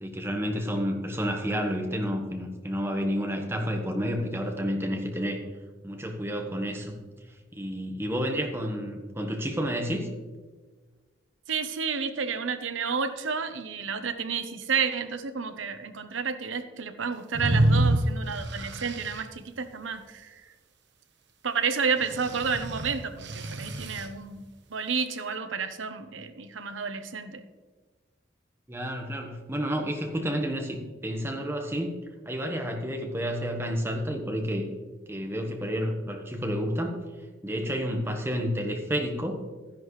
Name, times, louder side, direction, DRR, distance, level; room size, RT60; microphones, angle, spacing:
voice 1, 0.0-5.4 5.8-7.0 7.5-10.1 28.7-31.9 32.2-34.7 35.1-37.0 37.4-39.4, equal, 10° right, 2 dB, 1.2 m, -30 dB
voice 2, 11.5-20.4 21.4-24.4 24.7-27.4, right 5 dB, 90° right, 9 dB, 0.9 m, -31 dB
sound 1, 17.3-19.2 22.0-24.1, right 1 dB, 65° right, 1.1 m, -27 dB
12.5 x 10.5 x 3.2 m, 1.3 s
head